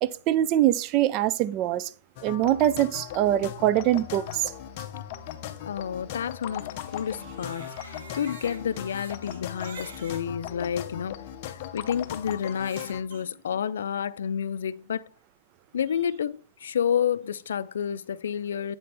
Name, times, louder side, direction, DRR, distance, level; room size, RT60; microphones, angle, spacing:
voice 1, 0.0-1.9 2.2-4.5, right 12 dB, 30° right, 0.3 m, -23 dB
sound 1, 2.2-13.0, left 11 dB, 40° left, 0.7 m, -38 dB
voice 2, 5.7-15.1 15.7-18.8, left 8 dB, 85° left, 0.4 m, -30 dB
Crying sobbing, 7.1-10.2 11.0-11.1 12.4-13.2, right 4 dB, 75° right, 1.9 m, -46 dB
8.6 x 4.2 x 3.3 m
hypercardioid pair, 160°, 0 cm